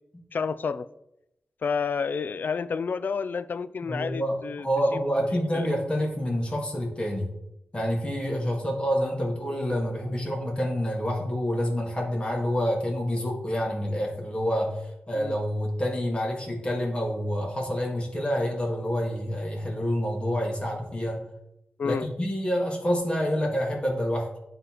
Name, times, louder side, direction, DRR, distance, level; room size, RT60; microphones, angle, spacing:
voice 1, 0.3-0.9 1.6-4.7 4.9-5.0 5.5-5.7 15.1-15.4 21.8-22.1, left 5 dB, 65° left, 15 dB, 0.3 m, -30 dB
voice 2, 3.9-7.3 7.7-14.8 15.1-21.2 21.8-24.3, equal, 30° left, -1 dB, 1.8 m, -27 dB
11.0 x 3.9 x 3.0 m, 0.86 s
wide cardioid pair, 75°, 3 cm